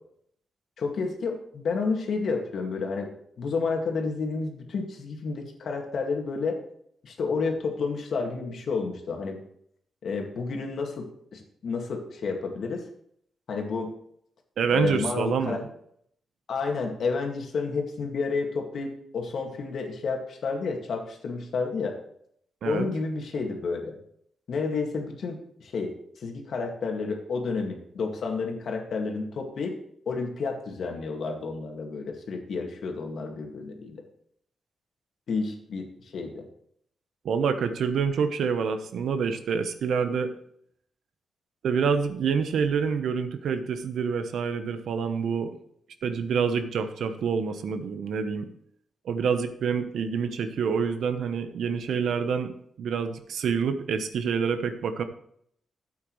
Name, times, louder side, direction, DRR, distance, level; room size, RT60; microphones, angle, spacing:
voice 1, 0.8-3.1 3.4-6.6 7.0-9.4 10.0-11.1 11.3-12.8 13.5-13.9 14.7-15.6 16.5-22.0 22.7-24.0 24.5-29.8 30.1-34.0 35.3-36.4, left 4 dB, 65° left, 2 dB, 2.1 m, -30 dB
voice 2, 14.6-15.6 22.6-22.9 37.2-40.3 41.6-45.6 46.0-48.5 49.0-52.5 52.8-55.0, right 6 dB, 80° right, 9 dB, 1.0 m, -27 dB
13.0 x 8.4 x 3.2 m, 0.68 s
cardioid pair, 115°, 0 cm